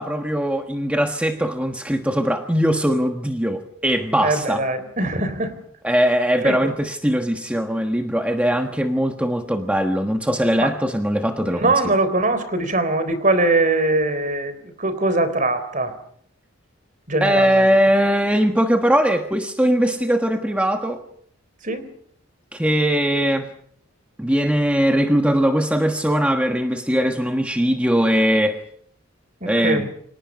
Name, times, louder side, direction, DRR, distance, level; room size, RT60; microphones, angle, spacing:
voice 1, 0.0-4.6 5.8-11.7 17.2-21.0 22.5-23.5 24.2-28.6 29.5-29.9, equal, 5° right, 4 dB, 1.3 m, -20 dB
voice 2, 4.2-5.6 6.4-6.7 10.6-10.7 11.5-15.9 17.1-17.7 21.6-21.9 29.4-29.9, right 2 dB, 40° right, 11 dB, 4.0 m, -22 dB
29.5 x 26.0 x 5.3 m, 0.65 s
head